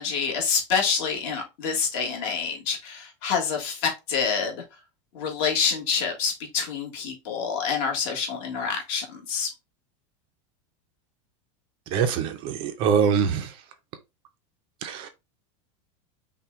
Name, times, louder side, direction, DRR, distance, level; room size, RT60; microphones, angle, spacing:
voice 1, 0.0-4.6 5.1-9.5, left 6 dB, 45° left, 1.5 m, -27 dB
voice 2, 11.9-13.5 14.8-15.1, right 7 dB, 30° right, 0.5 m, -24 dB
5.6 x 2.2 x 3.6 m
supercardioid pair, 170°, 16 cm